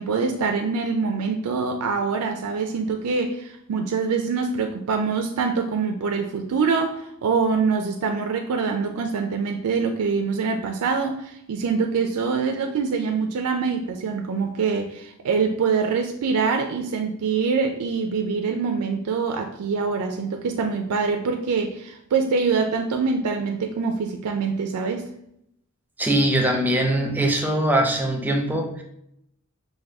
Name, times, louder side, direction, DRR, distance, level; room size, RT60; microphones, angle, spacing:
voice 1, 0.0-25.1, right 5 dB, 80° right, 4 dB, 0.4 m, -24 dB
voice 2, 26.0-28.8, right 1 dB, 10° right, 2 dB, 0.5 m, -22 dB
4.7 x 2.2 x 3.4 m, 0.75 s
head